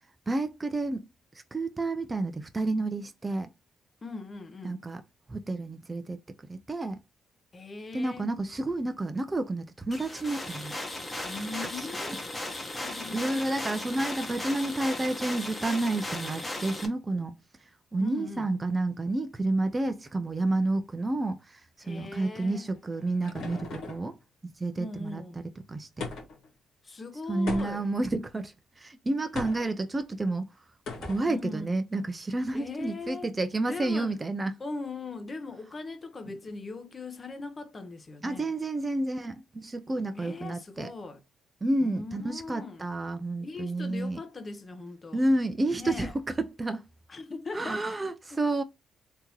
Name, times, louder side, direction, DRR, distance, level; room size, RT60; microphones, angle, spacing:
voice 1, 0.3-1.1 1.5-3.5 4.6-5.0 5.3-6.2 6.5-7.0 7.9-10.7 11.2-11.3 11.8-11.9 12.7-17.4 17.9-21.6 21.9-24.2 24.6-25.4 25.7-26.1 27.3-30.5 31.0-34.5 38.2-40.9 41.6-44.2 45.1-46.8 47.5-48.6, right 2 dB, 20° right, 0.5 m, -30 dB
voice 2, 4.0-4.8 7.5-8.3 11.2-12.4 12.8-13.4 18.0-18.5 21.8-22.7 24.7-25.4 26.8-27.9 31.3-31.8 32.5-33.3 33.6-34.1 34.6-38.5 40.1-41.2 41.8-42.9 43.4-45.2 45.7-46.1 47.1-47.8 48.3-48.4, left 3 dB, 30° left, 0.8 m, -40 dB
sound 1, 9.9-16.9, left 1 dB, 15° left, 1.1 m, -36 dB
sound 2, 22.6-24.1 26.0-26.5 27.5-28.0 29.4-29.7 30.9-31.3, left 3 dB, 75° left, 1.6 m, -38 dB
3.6 x 2.8 x 3.0 m
cardioid pair, 90°, 0 cm